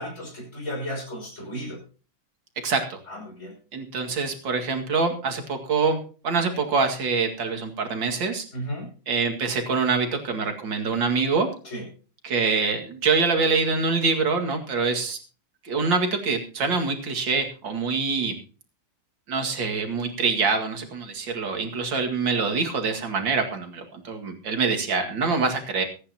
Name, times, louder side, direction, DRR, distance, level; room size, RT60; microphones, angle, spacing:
voice 1, 0.0-1.8 3.1-3.5 8.5-8.9 11.6-11.8, equal, 35° left, 0 dB, 6.0 m, -34 dB
voice 2, 2.6-3.0 3.7-6.0 6.2-8.5 9.1-11.5 12.2-15.2 15.6-18.4 19.3-25.8, right 4 dB, 65° right, 4 dB, 2.8 m, -25 dB
24.0 x 9.8 x 2.9 m, 0.37 s
omnidirectional pair, 2.2 m